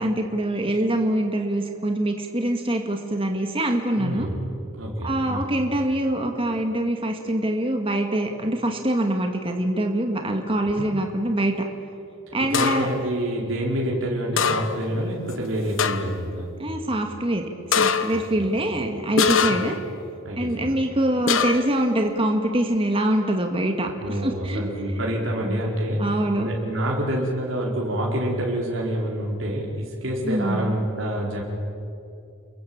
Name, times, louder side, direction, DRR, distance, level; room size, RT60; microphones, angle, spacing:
voice 1, 0.0-4.3 5.0-11.7 12.3-12.9 16.6-17.4 17.8-19.8 20.3-24.6 25.4-25.6 26.0-26.5 30.2-30.7, right 1 dB, 25° right, 3 dB, 2.0 m, -24 dB
voice 2, 4.0-4.4 4.8-5.4 10.8-10.9 12.3-16.5 18.1-18.5 19.4-19.6 20.2-20.8 24.0-26.1 26.4-31.4, right 1 dB, 70° right, -3 dB, 4.6 m, -27 dB
sound 1, 12.5-13.0 14.4-14.9 15.3-15.4 15.8-16.2 17.7-18.3 19.2-19.8 21.3-21.8, left 6 dB, 70° left, 1.2 m, -23 dB
29.0 x 22.5 x 8.7 m, 2.6 s
head